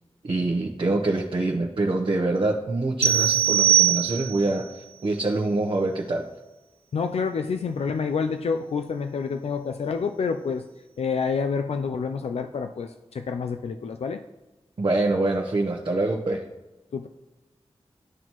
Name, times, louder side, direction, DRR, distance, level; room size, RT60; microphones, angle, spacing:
voice 1, 0.2-4.7 5.0-6.2 14.8-16.4, right 2 dB, 55° right, -1 dB, 0.9 m, -25 dB
sound 1, 3.0-4.5, right 10 dB, 70° right, 0.5 m, -20 dB
voice 2, 6.9-10.6 11.0-14.2 16.9-17.1, left 5 dB, 75° left, 6 dB, 0.4 m, -28 dB
12.0 x 4.1 x 3.0 m, 1.1 s
wide cardioid pair, 75°, 11 cm